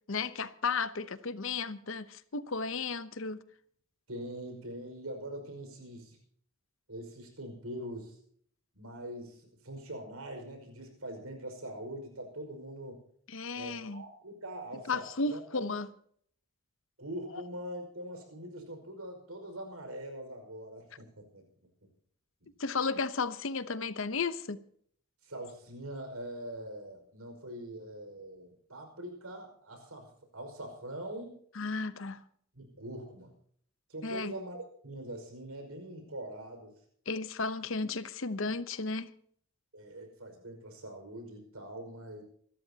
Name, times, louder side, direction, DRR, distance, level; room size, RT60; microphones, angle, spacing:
voice 1, 0.1-3.4 13.3-14.0 14.9-15.9 17.3-17.4 22.6-24.6 31.6-32.2 34.0-34.3 37.1-39.1, left 4 dB, 60° left, 0.9 m, -34 dB
voice 2, 4.1-6.2 6.9-8.2 8.7-13.0 13.6-15.7 17.0-21.4 22.4-22.5 25.2-31.4 32.5-33.3 33.9-34.6 34.8-36.7 39.7-42.2, right 1 dB, 75° right, 5.4 m, -43 dB
26.5 x 13.0 x 2.9 m
head